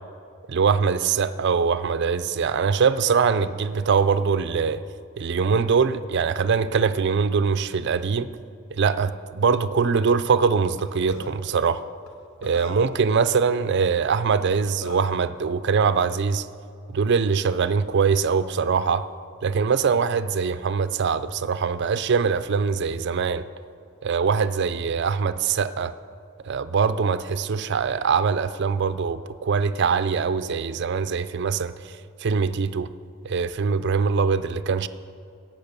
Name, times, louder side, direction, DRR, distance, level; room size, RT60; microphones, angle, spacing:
voice 1, 0.5-4.8 5.2-8.3 8.7-11.8 12.4-16.5 16.9-19.1 19.4-23.4 24.0-25.9 26.5-31.8 32.2-32.9 33.2-34.9, right 5 dB, 55° right, 13 dB, 0.4 m, -22 dB
Burping eructation, 10.8-10.9 11.1-11.3 12.1-12.2 12.4-12.9 14.3-14.4 14.8-15.2, left 3 dB, 85° left, 1.3 m, -38 dB
17.0 x 6.1 x 6.8 m, 2.5 s
head